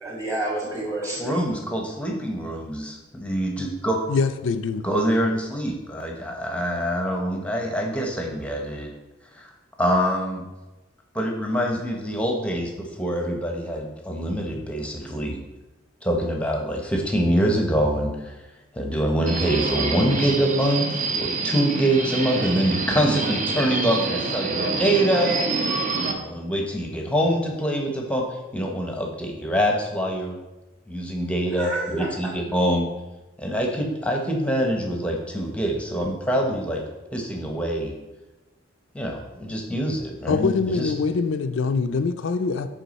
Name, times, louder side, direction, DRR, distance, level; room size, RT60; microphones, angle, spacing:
voice 1, 0.0-1.4 31.6-32.3, right 2 dB, 15° right, -3 dB, 1.6 m, -29 dB
voice 2, 1.2-4.0 4.8-8.9 9.3-9.5 9.8-10.4 11.1-15.4 16.0-18.3 18.7-25.4 25.9-28.3 28.5-30.4 30.9-32.9 33.4-36.8 37.1-38.0 38.9-40.9, equal, 5° left, 1 dB, 0.8 m, -25 dB
voice 3, 4.1-4.8 40.3-42.7, left 4 dB, 75° left, 7 dB, 0.4 m, -24 dB
Subway metro underground, 19.3-26.1, right 3 dB, 40° right, 0.7 m, -26 dB
9.9 x 3.7 x 4.1 m, 1.1 s
head